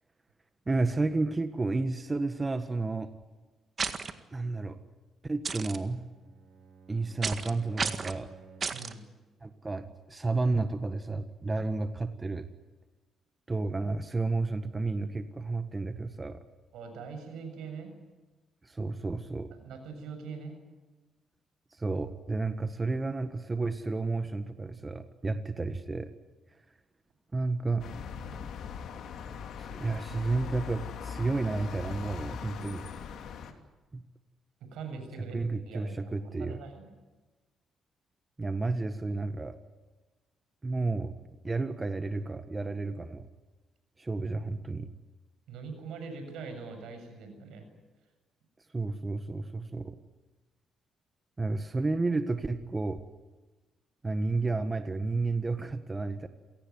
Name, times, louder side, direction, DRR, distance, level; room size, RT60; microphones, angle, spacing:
voice 1, 0.7-3.1 4.3-4.8 5.2-6.1 6.9-8.3 9.4-12.4 13.5-16.4 18.6-19.5 21.8-26.1 27.3-27.9 29.6-32.8 33.9-34.0 35.3-36.6 38.4-39.6 40.6-43.3 44.0-44.9 48.7-50.0 51.4-53.1 54.0-56.3, right 3 dB, 25° right, 9 dB, 1.6 m, -31 dB
sound 1, 3.8-4.1 5.4-5.8 7.2-7.5 7.8-8.2 8.6-8.9, right 5 dB, 40° right, 1.8 m, -32 dB
Bowed string instrument, 5.7-8.9, right 5 dB, 65° right, 3.6 m, -53 dB
voice 2, 8.7-9.0 16.7-17.9 19.5-20.6 34.6-35.4 35.7-36.9 45.5-47.7, right 5 dB, 85° right, 7 dB, 7.2 m, -42 dB
sound 2, 27.8-33.5, left 7 dB, 75° left, 2.9 m, -40 dB
28.0 x 18.0 x 9.6 m, 1.2 s
cardioid pair, 90°, 0 cm